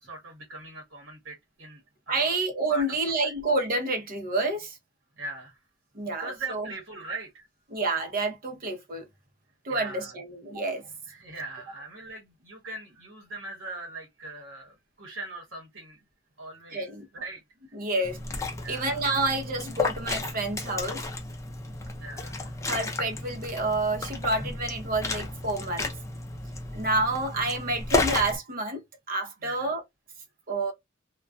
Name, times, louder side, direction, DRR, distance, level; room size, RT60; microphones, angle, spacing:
voice 1, 0.0-2.4 2.7-3.3 5.2-5.6 6.0-7.5 9.7-10.1 11.1-16.0 16.4-17.4 18.6-19.0 22.0-22.6 29.4-29.7, right 2 dB, 65° right, 1.0 m, -41 dB
voice 2, 2.1-4.8 5.9-6.7 7.7-9.0 9.6-10.8 16.7-17.1 17.7-18.2 18.7-21.1 22.6-25.9 26.7-28.8 29.1-29.8 30.5-30.7, right 2 dB, 45° right, 0.7 m, -29 dB
Liquid, 18.0-28.4, left 3 dB, 15° left, 0.5 m, -33 dB
2.5 x 2.2 x 2.2 m
head